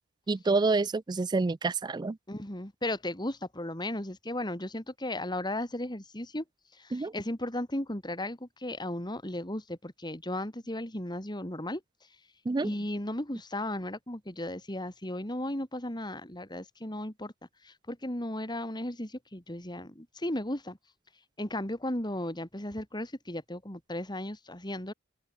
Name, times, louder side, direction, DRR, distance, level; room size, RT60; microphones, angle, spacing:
voice 1, 0.3-2.2 6.9-7.1 12.5-12.7, right 3 dB, 20° right, 0.3 m, -28 dB
voice 2, 2.3-6.4 6.7-11.8 12.6-17.3 17.6-20.8 21.4-24.9, left 1 dB, 20° left, 3.4 m, -35 dB
open air
head